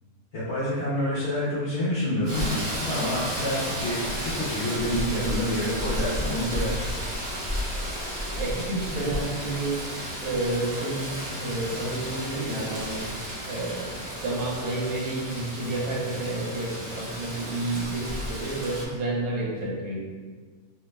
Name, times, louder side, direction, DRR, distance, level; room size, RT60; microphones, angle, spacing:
voice 1, 0.3-2.5 2.9-6.8 8.9-9.2, left 1 dB, 60° left, -10 dB, 0.8 m, -28 dB
Rain, 2.2-18.9, equal, 50° right, 0.5 m, -33 dB
voice 2, 8.4-9.8 10.2-13.1 13.5-20.0, right 2 dB, 70° right, -4 dB, 1.1 m, -30 dB
2.7 x 2.0 x 3.2 m, 1.5 s
omnidirectional pair, 1.7 m